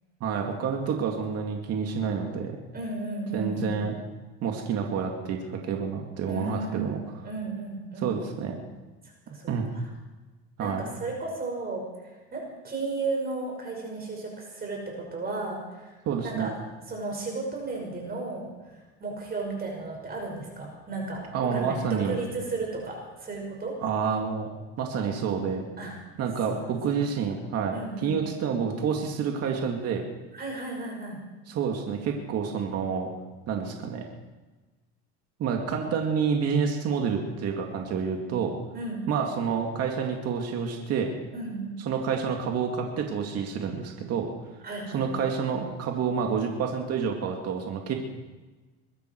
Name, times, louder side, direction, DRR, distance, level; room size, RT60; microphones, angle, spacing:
voice 1, 0.2-2.6 3.3-3.9 4.4-7.0 8.0-8.6 9.5-9.7 10.6-10.9 16.1-16.5 21.3-22.2 23.8-24.5 24.8-25.6 26.2-27.8 28.0-30.0 31.5-33.1 33.5-34.0 35.4-38.6 39.1-41.1 41.9-44.3 44.9-47.9, right 6 dB, 55° right, 2 dB, 2.4 m, -28 dB
voice 2, 2.7-3.7 6.2-6.9 7.2-8.1 9.3-9.8 10.6-16.5 16.9-23.7 25.8-25.9 26.5-26.6 27.7-28.2 30.3-31.2 38.7-39.0 41.3-41.8 44.6-45.2, right 3 dB, 30° right, 0 dB, 5.9 m, -34 dB
22.5 x 12.5 x 4.7 m, 1.2 s
supercardioid pair, 110°, 31 cm